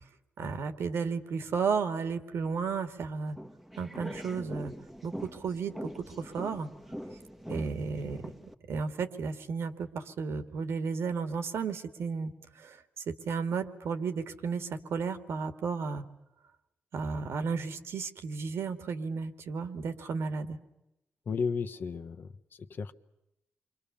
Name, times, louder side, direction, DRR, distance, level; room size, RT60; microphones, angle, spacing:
voice 1, 0.4-3.4 3.8-4.7 5.0-6.7 7.5-8.3 8.7-12.8 13.1-16.0 16.9-20.6, right 5 dB, 75° right, 10 dB, 2.3 m, -33 dB
sound 1, 3.3-8.5, equal, 5° right, 1.3 m, -43 dB
voice 2, 21.3-22.3 22.8-22.9, left 5 dB, 55° left, 9 dB, 1.3 m, -33 dB
29.0 x 24.5 x 7.0 m, 0.89 s
wide cardioid pair, 135°, 4 cm